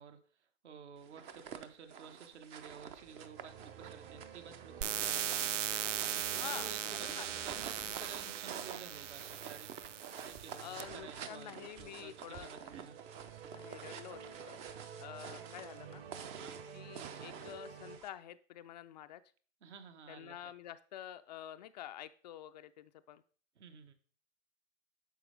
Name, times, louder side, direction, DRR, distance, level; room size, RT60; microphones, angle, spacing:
voice 1, 0.0-5.3 6.0-9.7 10.2-13.0 16.3-16.6 19.6-20.5 23.5-23.9, right 7 dB, 70° right, 7 dB, 1.5 m, -52 dB
sound 1, 1.0-18.1, right 7 dB, 20° right, 0.4 m, -49 dB
sound 2, 2.6-18.0, right 6 dB, 50° right, 1.5 m, -53 dB
sound 3, 4.8-10.8, right 10 dB, 85° right, 0.5 m, -38 dB
voice 2, 6.4-7.3 10.6-12.5 13.5-14.6 15.0-16.0 16.7-19.2 20.1-23.2, left 12 dB, 40° left, 12 dB, 0.4 m, -48 dB
10.0 x 6.8 x 3.3 m, 0.43 s
hypercardioid pair, 125°, 36 cm